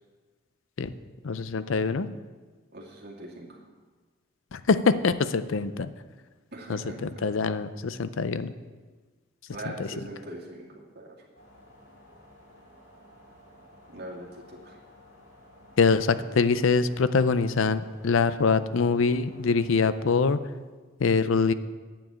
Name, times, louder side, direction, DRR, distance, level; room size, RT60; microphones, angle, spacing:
voice 1, 1.2-2.1 4.5-5.9 6.7-8.5 9.8-9.9 15.8-20.4 21.0-21.5, left 4 dB, 75° left, 13 dB, 0.5 m, -24 dB
voice 2, 2.7-3.6 6.5-7.2 9.5-11.2 13.9-14.8, right 1 dB, 50° right, -2 dB, 2.3 m, -41 dB
sound 1, 11.3-20.0, left 1 dB, 60° left, 3.0 m, -54 dB
9.2 x 7.2 x 8.5 m, 1.4 s
head